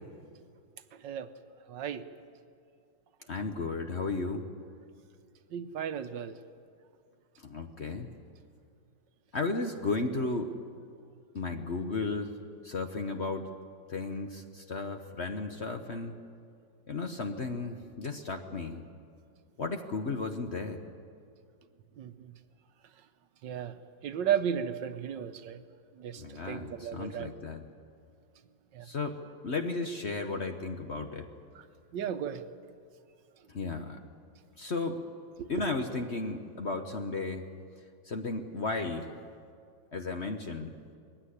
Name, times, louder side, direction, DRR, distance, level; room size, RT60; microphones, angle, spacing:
voice 1, 1.7-2.0 5.5-6.3 22.0-22.3 23.4-23.7 24.0-25.6 26.0-27.3 28.7-28.9 31.5-31.6 31.9-32.4 35.4-35.6, right 9 dB, 75° right, 10 dB, 1.5 m, -34 dB
voice 2, 3.3-4.4 7.4-8.1 9.3-10.5 11.3-12.4 12.6-13.5 13.9-16.2 16.9-18.8 19.6-20.8 26.2-27.7 28.8-31.3 33.5-34.0 34.6-35.0 35.5-37.5 38.0-39.2 39.9-40.8, left 3 dB, 45° left, 5 dB, 1.0 m, -34 dB
20.5 x 16.0 x 9.9 m, 2.3 s
omnidirectional pair, 2.0 m